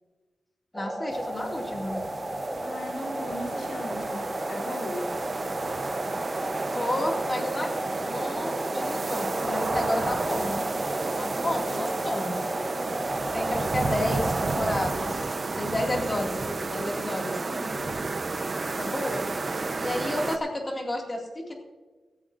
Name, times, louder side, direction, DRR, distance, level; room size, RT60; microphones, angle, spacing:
voice 1, 0.7-2.0 6.7-7.7 8.0-10.7 11.1-12.4 13.3-15.3 15.6-17.4 18.8-19.3 19.7-21.5, left 1 dB, 20° left, 1 dB, 2.2 m, -31 dB
sound 1, 0.7-14.9, right 1 dB, 5° right, 0.9 m, -33 dB
sound 2, 1.1-20.4, right 3 dB, 35° right, 0.8 m, -32 dB
voice 2, 2.6-5.1 17.5-17.9, left 1 dB, 70° left, 2 dB, 3.4 m, -37 dB
17.0 x 13.5 x 2.6 m, 1.2 s
wide cardioid pair, 170°, 0 cm